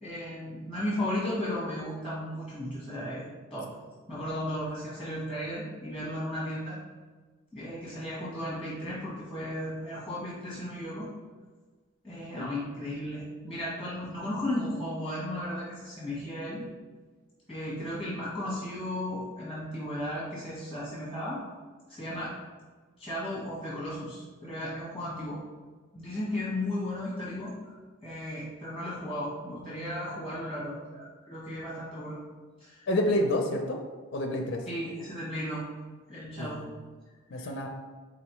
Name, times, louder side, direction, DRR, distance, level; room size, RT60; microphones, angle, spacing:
voice 1, 0.0-3.2 3.5-3.7 4.1-6.8 7.5-11.1 12.0-16.6 17.5-21.4 21.9-22.3 23.0-25.4 25.9-27.8 28.0-32.2 32.6-32.9 34.7-35.6 36.1-36.6 37.4-37.5, left 1 dB, ahead, -9 dB, 1.1 m, -35 dB
voice 2, 32.9-33.8 34.1-34.7 36.4-36.7 37.3-37.7, left 1 dB, 50° left, 2 dB, 0.4 m, -28 dB
4.0 x 3.9 x 3.0 m, 1.4 s
head